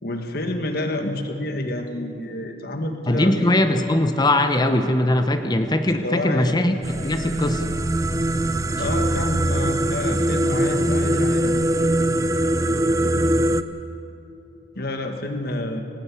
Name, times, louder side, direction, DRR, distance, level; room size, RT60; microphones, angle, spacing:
voice 1, 0.0-3.5 6.0-6.6 8.8-11.5 14.7-15.8, left 1 dB, 60° left, 5 dB, 1.6 m, -28 dB
voice 2, 3.1-6.7 7.0-7.7, left 1 dB, 25° left, 7 dB, 0.9 m, -20 dB
sound 1, 6.8-13.6, right 1 dB, 20° right, 0.5 m, -22 dB
18.5 x 18.5 x 8.4 m, 2.8 s
head